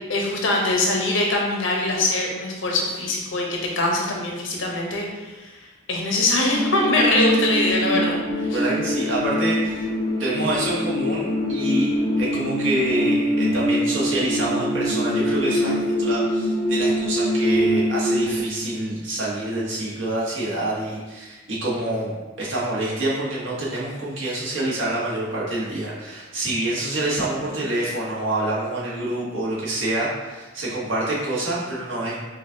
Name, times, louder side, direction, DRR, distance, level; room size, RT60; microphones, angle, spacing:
voice 1, 0.1-5.6 5.9-8.6 27.4-27.6, left 2 dB, 75° left, -1 dB, 0.8 m, -23 dB
sound 1, 6.5-18.4, equal, 20° left, 0.5 m, -23 dB
voice 2, 8.5-9.9 10.2-22.1 22.4-32.2, right 1 dB, 75° right, -6 dB, 1.1 m, -27 dB
5.2 x 2.3 x 2.6 m, 1.2 s
head